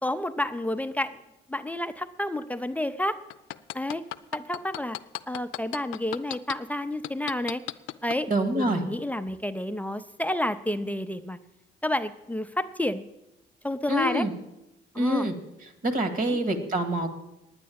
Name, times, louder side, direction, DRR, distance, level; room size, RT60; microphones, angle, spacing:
voice 1, 0.0-1.2 1.5-3.2 3.7-4.0 4.3-5.0 5.3-7.6 8.0-11.4 11.8-13.1 13.6-14.3 14.9-15.3 16.2-16.4, left 1 dB, 5° left, 9 dB, 0.5 m, -30 dB
sound 1, 3.3-6.6 7.0-8.2 8.7-8.8, left 15 dB, 80° left, 0.5 m, -34 dB
voice 2, 8.3-8.8 13.9-14.3 14.9-15.3 15.8-17.1, right 1 dB, 45° right, 9 dB, 1.9 m, -25 dB
9.7 x 9.6 x 8.6 m, 0.93 s
cardioid pair, 90°, 20 cm